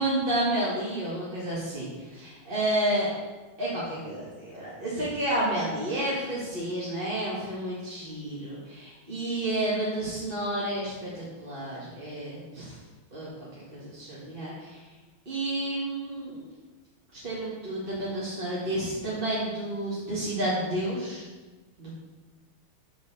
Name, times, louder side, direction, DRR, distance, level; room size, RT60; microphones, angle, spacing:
voice 1, 0.0-3.1 3.6-12.8 13.1-13.3 13.7-14.8 15.3-16.4 17.1-21.3 21.8-21.9, right 1 dB, 25° right, -9 dB, 2.1 m, -30 dB
8.2 x 4.7 x 6.5 m, 1.2 s
omnidirectional pair, 2.3 m